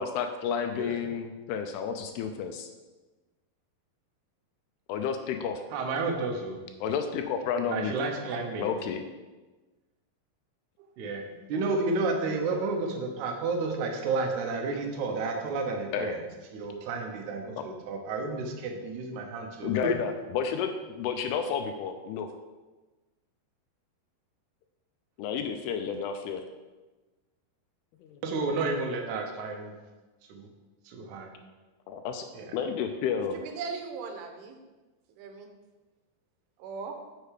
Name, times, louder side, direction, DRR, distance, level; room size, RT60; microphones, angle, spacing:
voice 1, 0.0-2.7 4.9-5.6 6.8-7.9 8.6-9.0 11.0-11.5 15.9-16.2 17.6-17.7 19.6-22.3 25.2-26.4 28.0-28.2 31.9-32.2 32.5-33.4, left 7 dB, 85° left, 6 dB, 2.5 m, -31 dB
voice 2, 5.7-6.6 7.7-8.8 11.0-16.2 16.5-20.0 28.2-29.8 30.3-30.5 30.9-31.3 32.3-32.6, right 3 dB, 70° right, 2 dB, 1.9 m, -31 dB
voice 3, 33.3-34.6 35.2-35.5 36.6-37.0, right 5 dB, 90° right, 5 dB, 2.9 m, -38 dB
6.6 x 6.6 x 4.8 m, 1.2 s
omnidirectional pair, 4.6 m